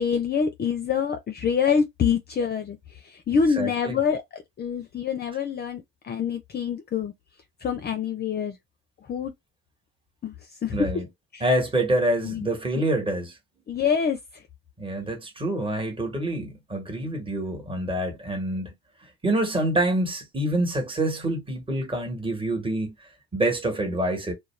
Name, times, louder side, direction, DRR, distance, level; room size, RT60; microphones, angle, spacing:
voice 1, 0.0-4.2 4.6-7.1 7.6-8.6 9.1-9.3 10.2-10.3 10.6-10.9 11.3-11.4 12.2-12.5 13.7-14.4, left 6 dB, 35° left, 0.5 m, -26 dB
voice 2, 3.6-4.0 10.7-11.0 11.4-13.4 14.8-18.7 19.0-24.3, right 1 dB, 15° right, 1.2 m, -26 dB
2.3 x 2.2 x 3.1 m
supercardioid pair, 70°, 30 cm